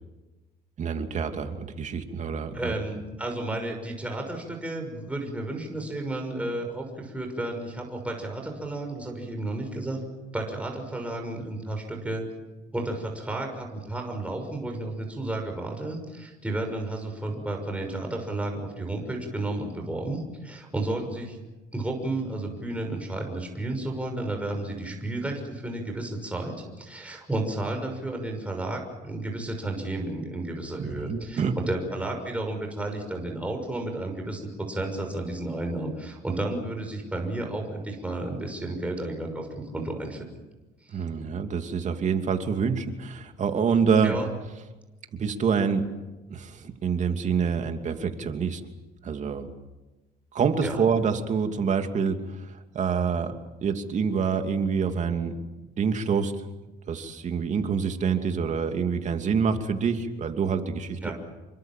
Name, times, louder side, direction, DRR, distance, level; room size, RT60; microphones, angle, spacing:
voice 1, 0.8-2.7 30.8-31.6 40.9-44.2 45.2-45.9 46.3-48.7 49.0-49.5 50.3-53.3 53.6-55.4 55.8-56.3 56.9-61.0, right 6 dB, 45° right, 6 dB, 2.8 m, -26 dB
voice 2, 2.5-10.0 10.3-12.3 12.7-21.4 21.7-40.3 40.8-41.0 44.0-44.3 50.6-50.8 61.0-61.1, right 2 dB, 10° right, 2 dB, 6.0 m, -32 dB
28.0 x 24.0 x 7.5 m, 1.1 s
cardioid pair, 110°, 17 cm